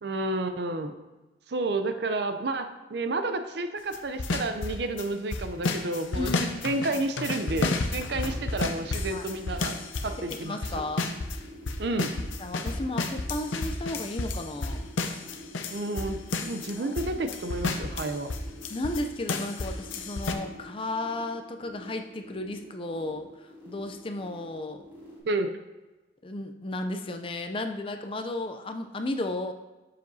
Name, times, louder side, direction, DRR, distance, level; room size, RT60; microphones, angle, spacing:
voice 1, 0.0-0.9 1.5-6.3 6.6-9.8 10.0-10.7 11.8-12.1 15.7-18.3 25.2-25.5, right 2 dB, 60° right, 9 dB, 0.5 m, -30 dB
sound 1, 3.9-5.0 5.3-11.4 11.7-19.0 19.3-20.3, left 3 dB, 85° left, 0.7 m, -31 dB
voice 2, 6.1-7.0 8.1-8.2 9.1-9.2 10.2-11.1 12.4-14.8 16.8-17.3 18.7-24.8 26.2-29.5, left 2 dB, 25° left, 6 dB, 0.4 m, -34 dB
sound 2, 7.7-25.2, equal, 10° right, 2.5 m, -48 dB
7.8 x 6.8 x 2.7 m, 1.1 s
head